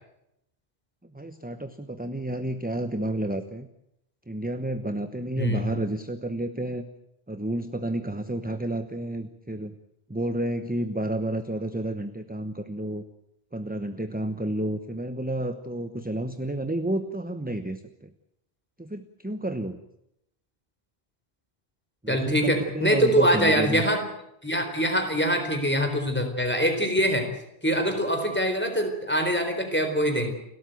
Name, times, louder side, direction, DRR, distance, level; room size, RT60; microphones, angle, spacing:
voice 1, 1.1-3.7 4.3-6.9 7.3-9.7 10.1-13.0 13.5-18.1 18.8-19.8 22.0-23.8, right 1 dB, 10° right, 9 dB, 1.0 m, -30 dB
voice 2, 5.4-5.8 22.1-24.0 24.4-27.3 27.6-30.3, equal, 10° left, 5 dB, 4.1 m, -24 dB
30.0 x 13.0 x 9.3 m, 0.82 s
omnidirectional pair, 1.1 m